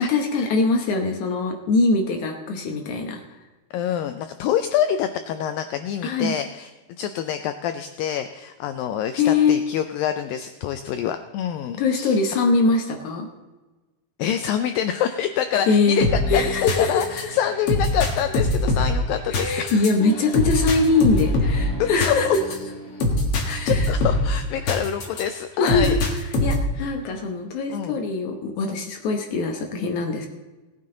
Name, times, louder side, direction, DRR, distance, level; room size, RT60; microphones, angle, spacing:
voice 1, 0.0-3.2 6.0-6.3 9.2-9.6 11.8-13.3 15.7-17.3 19.3-22.3 23.5-23.9 25.6-26.0 26.4-30.3, left 4 dB, 65° left, 3 dB, 2.0 m, -22 dB
voice 2, 3.7-6.7 7.0-12.2 14.2-19.9 21.8-22.3 23.4-26.0 26.8-26.9 27.7-28.0, left 9 dB, 85° left, 8 dB, 2.0 m, -26 dB
sound 1, 16.0-25.2 25.7-26.8, left 1 dB, 50° left, 1.9 m, -23 dB
18.0 x 9.4 x 3.8 m, 1.2 s
omnidirectional pair, 4.6 m